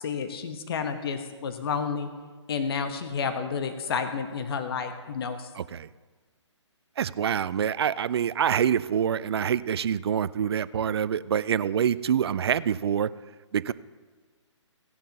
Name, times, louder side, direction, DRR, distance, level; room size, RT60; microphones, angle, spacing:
voice 1, 0.0-2.1 2.5-5.5, left 6 dB, 50° left, 7 dB, 1.1 m, -30 dB
voice 2, 5.5-5.9 7.0-13.1 13.5-13.7, right 8 dB, 55° right, 17 dB, 0.4 m, -26 dB
16.5 x 10.5 x 2.9 m, 1.4 s
figure-of-eight pair, 140°, 16 cm